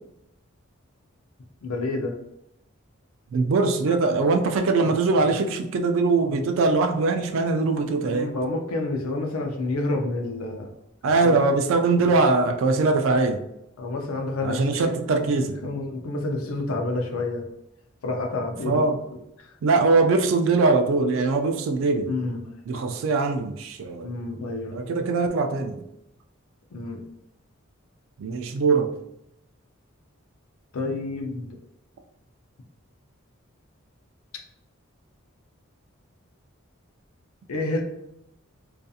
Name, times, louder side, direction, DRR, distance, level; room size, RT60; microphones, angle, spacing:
voice 1, 1.6-2.2 3.9-4.0 8.0-10.7 11.0-11.4 11.9-12.0 13.8-14.9 15.6-17.5 18.0-18.8 19.1-19.6 22.1-22.5 24.0-24.8 26.7-27.0 30.7-31.5 37.5-37.8, left 2 dB, 85° left, 3 dB, 0.5 m, -29 dB
voice 2, 3.3-8.3 11.0-13.4 14.4-15.5 18.7-19.0 19.6-22.1 22.7-24.1 24.7-25.8 28.2-28.9, right 3 dB, 65° right, 5 dB, 0.3 m, -22 dB
2.6 x 2.4 x 2.3 m, 0.82 s
head